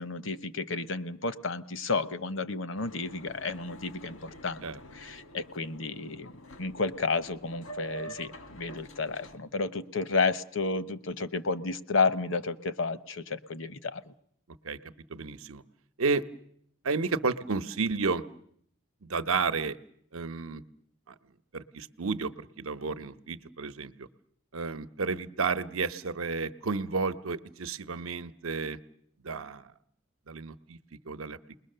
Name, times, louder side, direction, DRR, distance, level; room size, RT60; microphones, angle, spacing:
voice 1, 0.0-4.7 4.9-6.3 6.6-14.1, left 4 dB, 65° left, 13 dB, 0.9 m, -31 dB
Boat Water vehicle, 2.8-9.4, right 1 dB, 80° left, 1.6 m, -47 dB
voice 2, 14.6-15.6 16.0-16.2 16.8-18.2 19.0-19.8 20.1-20.6 21.1-21.2 21.5-24.1 24.5-28.8 29.2-29.7 30.3-30.8 31.0-31.4, right 4 dB, 85° right, 11 dB, 0.9 m, -32 dB
29.0 x 20.5 x 6.7 m, 0.67 s
head